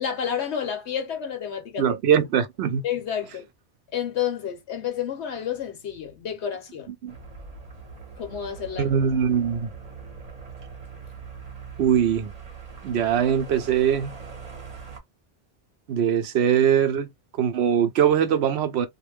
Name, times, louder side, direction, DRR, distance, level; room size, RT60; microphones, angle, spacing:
voice 1, 0.0-1.9 2.8-3.5 3.9-6.9 8.2-8.9, left 8 dB, 80° left, 1.1 m, -30 dB
voice 2, 1.8-2.8 7.0-7.1 8.8-9.7 11.8-12.3 12.8-14.1 15.9-17.1 17.4-18.9, right 8 dB, 75° right, 0.9 m, -21 dB
sound 1, 7.1-15.0, right 5 dB, 40° right, 1.0 m, -41 dB
2.5 x 2.1 x 3.3 m
omnidirectional pair, 1.1 m